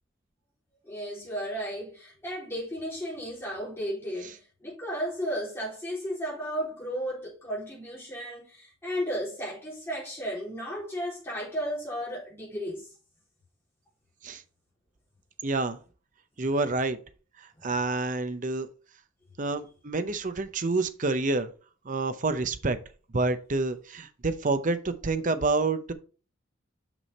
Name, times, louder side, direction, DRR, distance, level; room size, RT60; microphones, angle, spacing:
voice 1, 0.8-12.9 17.6-17.7, equal, 10° left, 3.8 m, -34 dB
voice 2, 15.4-15.8 16.4-17.0 17.4-18.7 19.4-21.5 21.8-22.8 23.1-25.9, right 3 dB, 40° right, 0.7 m, -28 dB
6.2 x 6.0 x 4.2 m
head